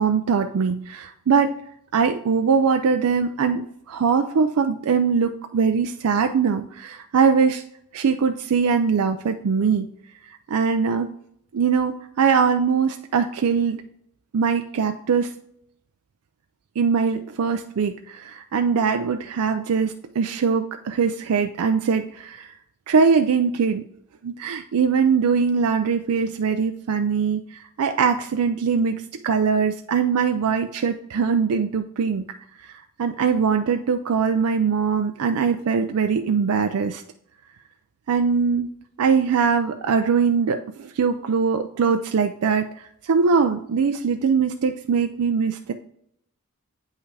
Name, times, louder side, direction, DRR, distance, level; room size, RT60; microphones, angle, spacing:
voice 1, 0.0-1.6 1.9-7.6 7.9-9.9 10.5-11.1 11.5-13.8 14.3-15.3 16.8-22.5 22.9-23.8 24.2-32.3 32.6-37.0 38.1-38.7 39.0-42.7 43.0-45.7, right 5 dB, 75° right, 7 dB, 0.4 m, -22 dB
8.2 x 5.6 x 3.3 m, 0.69 s
head